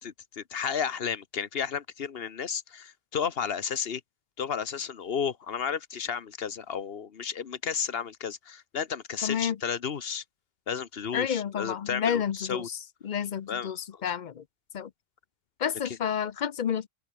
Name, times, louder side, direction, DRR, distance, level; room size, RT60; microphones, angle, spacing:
voice 1, 0.0-4.0 4.4-10.2 10.7-12.7 13.5-14.0 15.8-16.0, left 7 dB, 65° left, 1.3 m, -33 dB
voice 2, 9.2-9.6 11.1-12.8 13.0-14.4 14.7-14.9 15.6-16.9, left 8 dB, 50° left, 0.7 m, -30 dB
open air
omnidirectional pair, 1.1 m